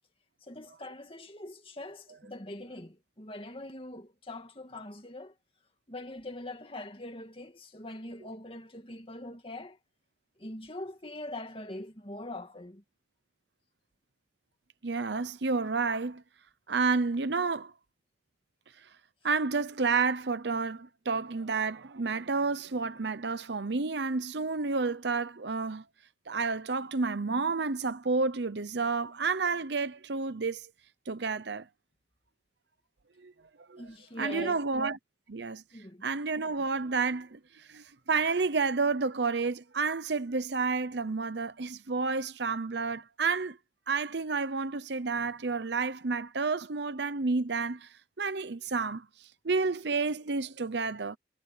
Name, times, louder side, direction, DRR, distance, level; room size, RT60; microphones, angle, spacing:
voice 1, 0.4-5.3 5.9-9.8 10.4-12.8 33.8-34.6 35.7-36.1, left 1 dB, 30° left, 2.4 m, -43 dB
voice 2, 14.8-16.2 16.7-17.7 19.2-25.8 26.3-30.7 31.1-31.7 33.2-33.3 33.7-33.8 34.2-35.0 35.3-35.6 36.0-43.6 43.9-51.2, right 4 dB, 65° right, 0.8 m, -30 dB
head